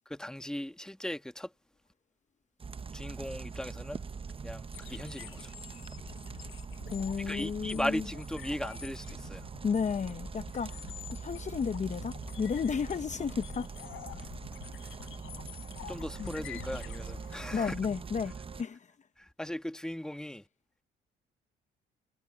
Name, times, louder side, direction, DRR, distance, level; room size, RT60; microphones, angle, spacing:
voice 1, 0.1-1.5 2.9-4.0 4.4-5.5 7.2-9.5 15.9-17.7 19.2-20.4, left 1 dB, 5° left, 1.3 m, -38 dB
sound 1, 2.6-18.6, right 5 dB, 25° right, 0.7 m, -43 dB
sound 2, 4.7-17.7, left 13 dB, 85° left, 7.0 m, -48 dB
voice 2, 6.9-8.0 9.6-10.8 11.1-13.7 14.8-14.9 16.2-16.3 17.5-18.9, left 6 dB, 40° left, 0.9 m, -33 dB
cardioid pair, 90°, 20 cm